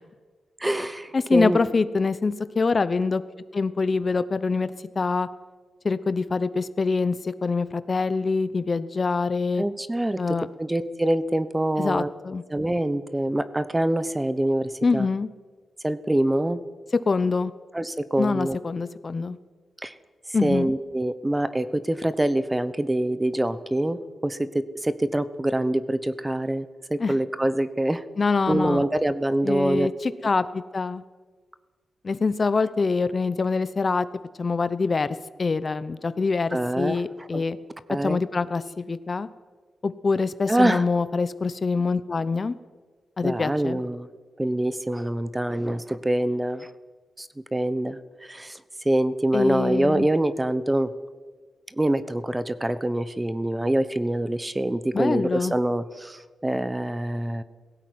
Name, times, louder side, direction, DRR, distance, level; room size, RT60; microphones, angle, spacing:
voice 1, 0.6-1.6 9.6-12.1 12.5-15.1 15.8-16.6 17.7-18.6 19.8-19.9 20.4-28.0 28.5-29.9 36.5-37.0 37.3-37.4 37.9-38.2 40.5-40.8 43.2-44.1 44.4-46.7 47.2-50.9 51.8-57.4, right 1 dB, 15° right, 14 dB, 1.0 m, -25 dB
voice 2, 1.1-3.2 3.5-5.3 5.8-9.6 10.2-10.5 11.8-12.4 14.8-15.3 17.1-17.5 18.2-19.4 20.3-20.7 27.0-27.2 28.2-28.8 29.4-31.0 32.0-34.1 34.4-35.1 35.4-37.6 38.0-39.3 39.8-42.5 43.2-43.8 49.3-50.1 54.9-55.5, left 4 dB, 40° left, 14 dB, 0.8 m, -25 dB
17.5 x 16.0 x 9.5 m, 1.4 s
cardioid pair, 100°, 0 cm